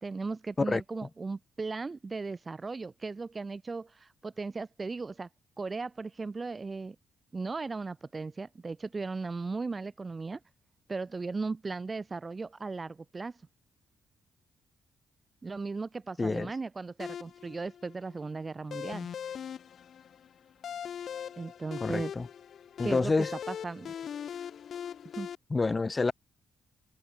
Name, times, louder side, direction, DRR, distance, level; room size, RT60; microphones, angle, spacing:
voice 1, 0.0-5.3 5.6-7.0 7.3-10.4 10.9-13.4 15.4-19.1 21.4-22.1 22.8-23.1 23.5-23.9 25.1-25.3, right 4 dB, 30° right, 1.0 m, -37 dB
voice 2, 16.2-16.5 21.8-22.3 22.8-23.3 25.5-26.1, left 3 dB, 25° left, 2.8 m, -28 dB
sound 1, 17.0-25.3, left 8 dB, 60° left, 3.2 m, -41 dB
cardioid pair, 90°, 0 cm